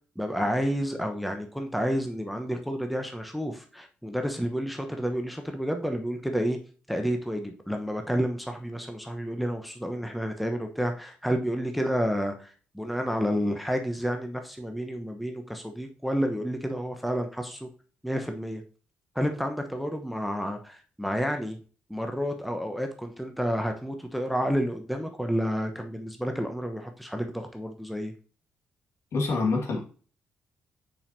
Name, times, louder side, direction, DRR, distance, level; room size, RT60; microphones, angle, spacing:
voice 1, 0.2-6.6 6.9-17.7 18.0-18.6 19.1-21.6 21.9-28.1, equal, ahead, 4 dB, 1.1 m, -30 dB
voice 2, 29.1-29.8, left 3 dB, 60° left, 1 dB, 1.9 m, -26 dB
6.9 x 5.4 x 2.8 m, 0.39 s
hypercardioid pair, 45°, 5 cm